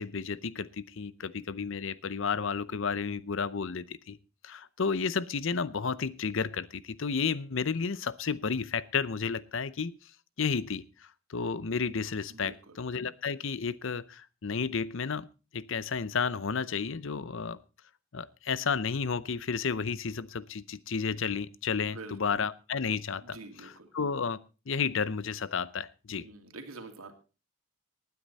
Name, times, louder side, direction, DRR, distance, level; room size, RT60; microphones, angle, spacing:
voice 1, 0.0-4.2 4.4-10.1 10.4-15.3 15.5-17.6 18.1-24.4 24.7-26.3, left 5 dB, 60° left, 18 dB, 0.7 m, -32 dB
voice 2, 12.3-12.8 21.8-22.4 23.2-23.9 26.1-27.1, right 3 dB, 85° right, 5 dB, 2.5 m, -46 dB
19.5 x 9.7 x 4.1 m, 0.33 s
head